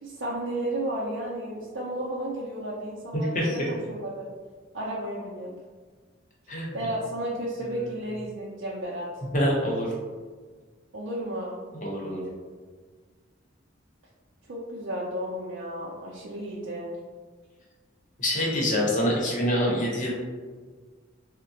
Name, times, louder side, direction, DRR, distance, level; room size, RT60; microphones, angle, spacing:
voice 1, 0.0-4.3 4.7-5.5 6.7-9.2 10.9-11.6 14.5-16.9, right 1 dB, 75° right, -5 dB, 0.5 m, -33 dB
voice 2, 3.1-3.5 6.5-6.8 7.6-7.9 9.3-9.9 11.8-12.2 18.2-20.1, equal, 45° left, -3 dB, 0.8 m, -26 dB
3.8 x 2.1 x 2.7 m, 1.5 s
head